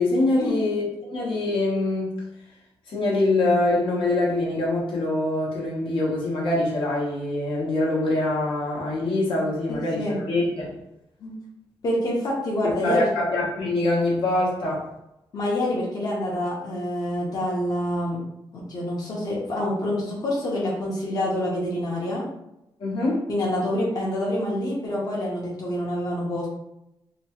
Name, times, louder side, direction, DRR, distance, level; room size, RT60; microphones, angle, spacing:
voice 1, 0.0-2.2 2.9-10.8 12.8-14.9 22.8-23.2, left 2 dB, 75° left, -4 dB, 0.9 m, -24 dB
voice 2, 9.7-10.2 11.2-11.3 11.8-13.1 15.3-18.2 18.5-22.2 23.3-26.5, left 1 dB, 50° left, -5 dB, 0.8 m, -27 dB
3.0 x 2.3 x 2.9 m, 0.85 s
wide cardioid pair, 130°, 9 cm